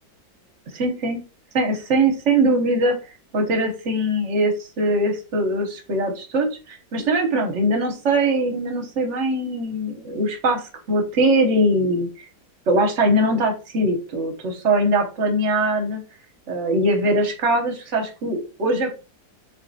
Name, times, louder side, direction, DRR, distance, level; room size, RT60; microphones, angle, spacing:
voice 1, 0.7-1.2 1.5-3.0 3.3-12.3 12.7-16.0 16.5-18.9, right 1 dB, 55° right, 3 dB, 0.9 m, -21 dB
3.7 x 3.5 x 2.6 m, 0.33 s
omnidirectional pair, 2.0 m